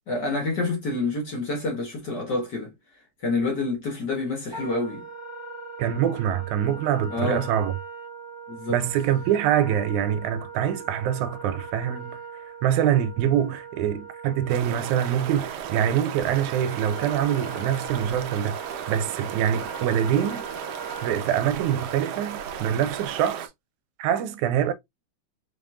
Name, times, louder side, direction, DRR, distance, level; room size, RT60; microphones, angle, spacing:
voice 1, 0.1-2.7 3.2-5.1 7.1-7.5 8.5-8.8, left 3 dB, 45° left, 1.6 m, -28 dB
Wind instrument woodwind instrument, 4.5-22.6, right 4 dB, 15° right, 0.8 m, -41 dB
voice 2, 5.8-7.7 8.7-12.2 12.6-18.6 18.9-20.5 21.0-23.5 24.0-24.7, right 10 dB, 90° right, 2.1 m, -24 dB
sound 1, 14.5-23.5, right 8 dB, 75° right, 1.4 m, -35 dB
5.3 x 3.6 x 2.4 m
omnidirectional pair, 3.4 m